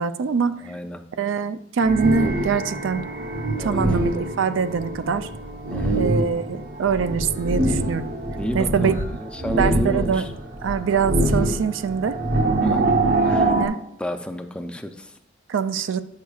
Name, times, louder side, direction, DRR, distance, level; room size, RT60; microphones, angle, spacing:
voice 1, 0.0-0.6 1.2-3.0 3.6-5.3 5.9-8.1 8.5-8.9 9.6-10.3 10.6-12.2 13.4-13.8 15.5-16.0, right 6 dB, 90° right, 11 dB, 0.4 m, -23 dB
voice 2, 0.6-1.1 3.6-3.8 5.7-6.0 8.3-10.3 12.6-12.9 13.2-13.6 14.0-15.2, equal, 5° left, 6 dB, 0.4 m, -31 dB
sound 1, 1.8-13.7, right 1 dB, 45° right, 0.7 m, -24 dB
9.1 x 6.6 x 2.3 m, 0.78 s
head